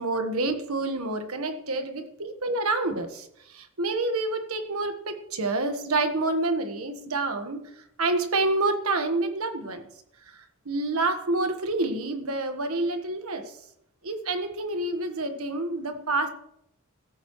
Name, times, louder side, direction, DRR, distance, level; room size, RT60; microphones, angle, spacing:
voice 1, 0.0-7.6 8.0-9.9 10.3-13.6 14.0-16.3, right 2 dB, 75° right, 7 dB, 1.4 m, -28 dB
16.5 x 13.5 x 3.2 m, 0.75 s
head